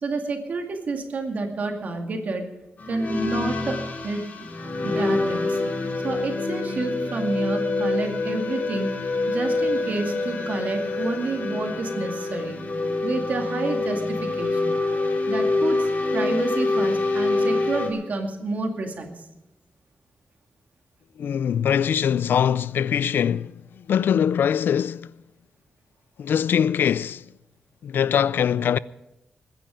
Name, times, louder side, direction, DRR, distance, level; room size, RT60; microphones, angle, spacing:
voice 1, 0.0-2.5 2.9-4.5 4.8-5.6 6.0-8.9 9.3-12.6 13.0-14.8 15.3-19.2, right 3 dB, 50° right, 2.3 m, -29 dB
sound 1, 2.8-17.9, left 2 dB, 50° left, 2.5 m, -26 dB
voice 2, 21.2-25.1 26.2-27.2 27.8-28.8, left 8 dB, 85° left, 0.4 m, -22 dB
21.0 x 10.5 x 5.1 m
wide cardioid pair, 175°, 3 cm